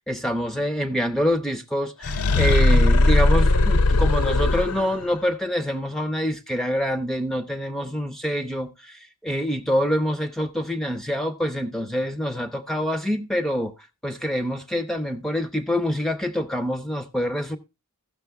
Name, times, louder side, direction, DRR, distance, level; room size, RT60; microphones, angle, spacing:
voice 1, 0.1-13.7 14.0-17.6, equal, ahead, 0.5 m, -26 dB
sound 1, 2.0-5.1, left 2 dB, 75° left, 0.6 m, -18 dB
15.0 x 6.3 x 3.4 m
head